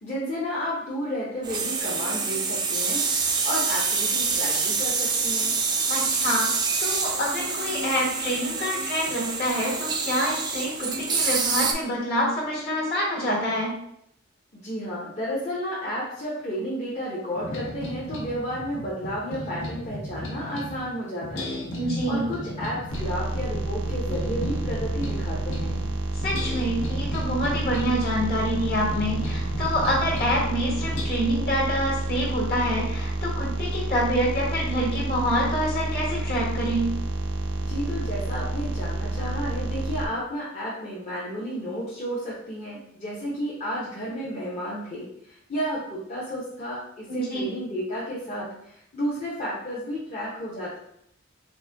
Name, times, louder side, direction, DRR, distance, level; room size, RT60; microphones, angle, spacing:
voice 1, 0.0-3.0 3.4-5.6 14.5-21.6 22.1-25.8 37.6-50.8, equal, 35° left, -8 dB, 0.8 m, -32 dB
sound 1, 1.4-11.7, right 4 dB, 20° right, 0.3 m, -26 dB
voice 2, 5.9-6.5 6.8-13.7 21.8-22.2 26.2-36.9 47.1-47.4, equal, 55° left, -4 dB, 1.4 m, -26 dB
sound 2, 17.3-20.8 21.2-25.9 26.2-30.4 30.8-31.0, left 1 dB, 75° left, 1.0 m, -35 dB
sound 3, 22.9-40.1, right 2 dB, 80° right, 0.5 m, -29 dB
4.1 x 2.2 x 3.4 m, 0.73 s
head